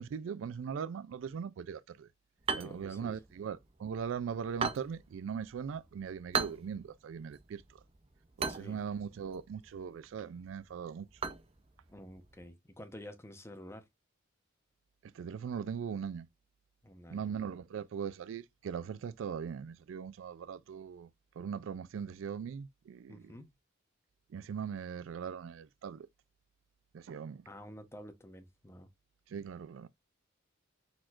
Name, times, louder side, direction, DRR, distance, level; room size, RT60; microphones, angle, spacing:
voice 1, 0.0-2.1 2.5-7.8 8.4-11.1 15.0-16.3 17.1-21.1 21.4-23.3 24.3-26.1 26.9-27.4 29.3-29.9, right 7 dB, 80° right, 0.3 m, -40 dB
sound 1, 2.4-12.5, right 5 dB, 30° right, 0.6 m, -41 dB
voice 2, 2.6-3.2 8.5-8.8 11.9-13.9 16.8-17.4 23.1-23.5 27.5-28.9, equal, 15° left, 0.8 m, -50 dB
4.3 x 4.2 x 2.4 m
head